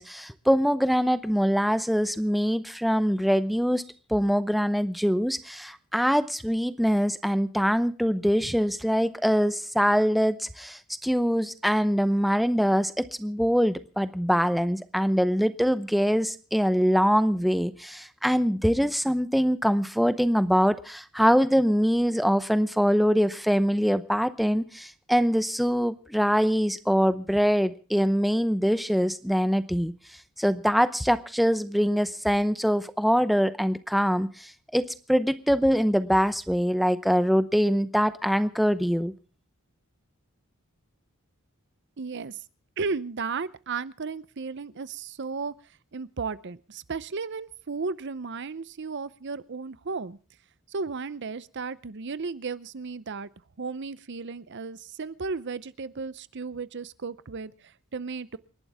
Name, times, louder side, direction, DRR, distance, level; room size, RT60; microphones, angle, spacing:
voice 1, 0.0-3.8 4.1-29.9 30.4-39.1, equal, ahead, 12 dB, 0.7 m, -24 dB
voice 2, 42.0-42.4 42.8-45.5 45.9-50.2 50.7-53.3 53.6-58.4, right 4 dB, 55° right, 17 dB, 0.7 m, -34 dB
28.5 x 11.5 x 3.5 m, 0.37 s
head